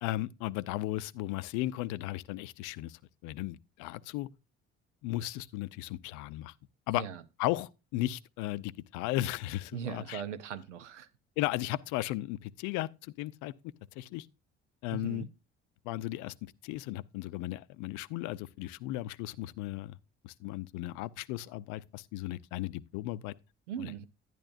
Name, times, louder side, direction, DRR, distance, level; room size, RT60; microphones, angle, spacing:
voice 1, 0.0-4.3 5.0-6.5 6.9-7.0 7.4-10.2 11.4-13.5 14.0-14.3 14.8-15.3 15.8-20.0 20.2-23.3, left 16 dB, 55° left, 0.5 m, -35 dB
voice 2, 9.7-11.1 14.9-15.3 23.7-24.1, right 8 dB, 80° right, 0.7 m, -39 dB
11.0 x 10.5 x 2.5 m
figure-of-eight pair, 50°, 35 cm